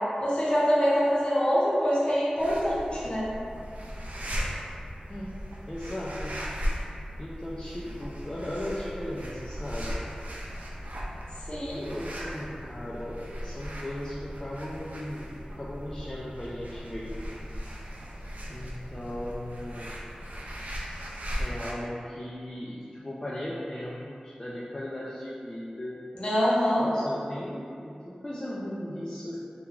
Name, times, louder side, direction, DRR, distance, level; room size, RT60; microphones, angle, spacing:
voice 1, 0.2-3.2 11.5-11.9 26.1-26.9, equal, 40° left, -8 dB, 0.8 m, -25 dB
sound 1, 2.4-21.7, equal, 70° right, 0.3 m, -37 dB
voice 2, 5.7-6.4 7.2-10.0 11.7-17.8 18.5-20.0 21.4-26.0 26.8-29.4, left 1 dB, 25° left, -7 dB, 0.3 m, -37 dB
2.9 x 2.3 x 2.3 m, 2.4 s
wide cardioid pair, 50°, 3 cm